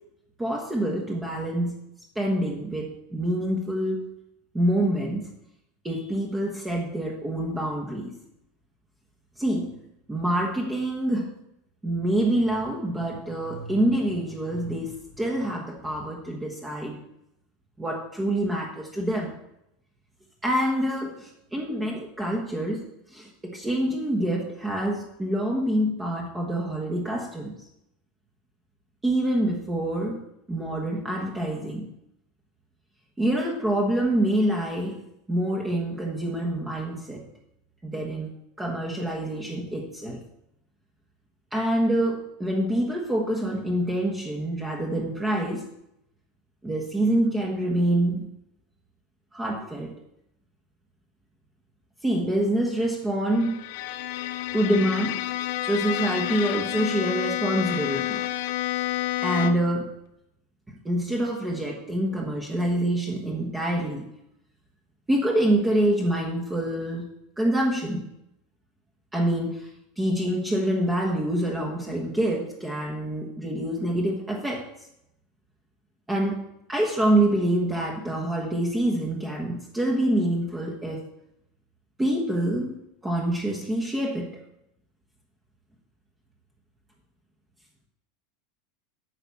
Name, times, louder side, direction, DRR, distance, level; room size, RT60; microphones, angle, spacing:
voice 1, 0.4-1.7 2.1-4.1 4.5-5.3 5.8-8.1 9.4-9.7 10.1-11.3 11.8-17.0 17.8-19.3 20.4-27.5 29.0-30.2 30.5-31.9 33.2-35.0 35.3-37.2 37.8-40.2 41.5-45.6 46.6-48.3 49.3-49.9 52.0-53.6 54.5-55.2 55.6-58.2 59.2-59.9 60.8-64.1 65.1-67.1 67.4-68.0 69.1-74.7 76.1-76.4 76.7-81.0 82.0-82.8 83.0-84.3, right 1 dB, 10° right, 0 dB, 1.3 m, -26 dB
Bowed string instrument, 53.3-59.8, left 14 dB, 65° left, 0.7 m, -29 dB
9.0 x 5.9 x 7.0 m, 0.80 s
supercardioid pair, 140°, 0 cm